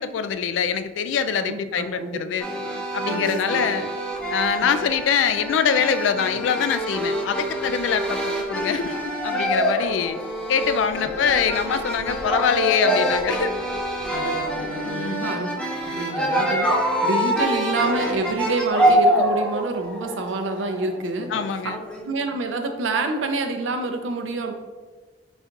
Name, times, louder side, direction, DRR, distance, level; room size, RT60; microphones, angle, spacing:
voice 1, 0.0-2.5 2.9-3.9 4.3-10.2 10.5-13.5 14.8-15.3 21.3-21.8, left 7 dB, 70° left, 11 dB, 0.3 m, -24 dB
voice 2, 1.4-2.2 3.1-3.6 11.0-11.1 14.1-15.5 15.9-21.4 22.0-24.5, right 3 dB, 85° right, 5 dB, 0.5 m, -27 dB
sound 1, 2.4-22.0, equal, 5° left, 0.6 m, -25 dB
4.5 x 4.1 x 2.5 m, 1.3 s
head